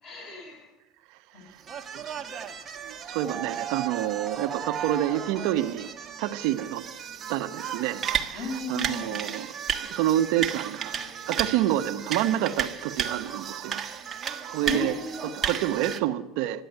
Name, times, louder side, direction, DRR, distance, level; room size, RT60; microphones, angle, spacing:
voice 1, 0.0-0.7 1.3-1.4 8.3-9.2 14.7-15.3, left 2 dB, 45° left, 1 dB, 6.5 m, -35 dB
sound 1, 1.6-16.0, right 8 dB, 25° right, 1.3 m, -34 dB
voice 2, 2.8-5.9 6.2-6.8 7.3-9.5 9.9-10.9 11.3-13.8 14.5-14.9 15.4-16.6, right 13 dB, 70° right, 9 dB, 0.9 m, -28 dB
14.0 x 10.5 x 9.2 m, 1.0 s
cardioid pair, 140°, 0 cm